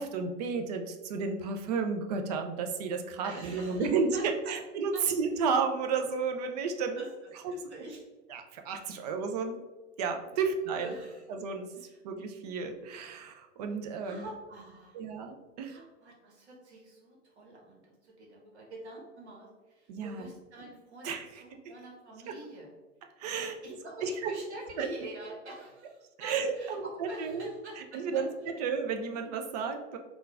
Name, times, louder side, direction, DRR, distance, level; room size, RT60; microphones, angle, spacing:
voice 1, 0.0-7.0 7.4-7.5 8.3-9.6 10.0-10.9 11.3-11.7 12.0-14.2 14.9-15.8 19.9-20.3 21.0-21.3 22.3-22.4 23.2-23.5 24.0-24.3 24.8-24.9 26.2-27.5 27.8-28.3 28.6-30.0, right 5 dB, 35° right, 5 dB, 0.4 m, -32 dB
voice 2, 3.2-4.6 4.9-5.0 6.9-7.1 7.5-8.1 9.0-9.1 10.3-11.2 11.8-12.0 14.0-15.0 15.6-22.7 23.4-28.3, right 1 dB, 65° right, -1 dB, 1.2 m, -46 dB
3.6 x 2.4 x 3.6 m, 1.2 s
figure-of-eight pair, 100°, 37 cm